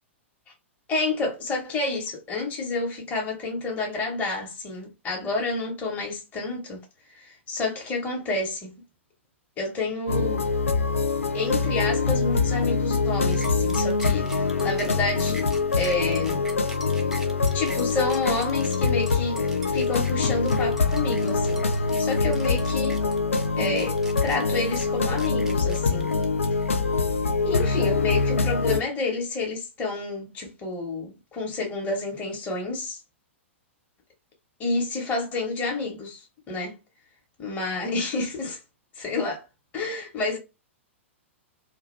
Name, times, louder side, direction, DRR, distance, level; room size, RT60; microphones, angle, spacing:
voice 1, 0.9-6.8 7.1-8.8 9.6-10.4 11.3-15.5 15.8-16.5 17.5-23.0 23.6-26.1 26.5-26.6 27.4-33.0 34.6-36.7 37.4-38.6 38.9-39.4 39.7-40.4, left 3 dB, 20° left, 0.9 m, -29 dB
sound 1, 10.1-28.8, left 4 dB, 80° left, 0.4 m, -24 dB
sound 2, 13.3-26.7, left 1 dB, 5° right, 0.5 m, -42 dB
2.4 x 2.2 x 3.1 m
figure-of-eight pair, 105°, 7 cm